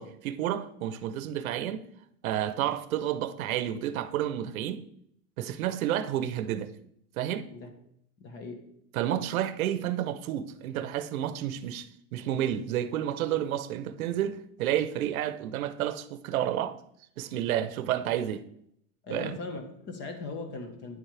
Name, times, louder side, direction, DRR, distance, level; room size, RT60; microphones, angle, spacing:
voice 1, 0.0-1.8 2.2-4.8 5.4-6.7 7.2-7.5 8.9-16.7 17.2-18.4 19.1-19.4, right 11 dB, 90° right, 0.9 m, -30 dB
voice 2, 8.2-8.7 19.0-21.0, left 3 dB, 25° left, 1.3 m, -39 dB
9.8 x 7.4 x 3.3 m
supercardioid pair, 165°, 41 cm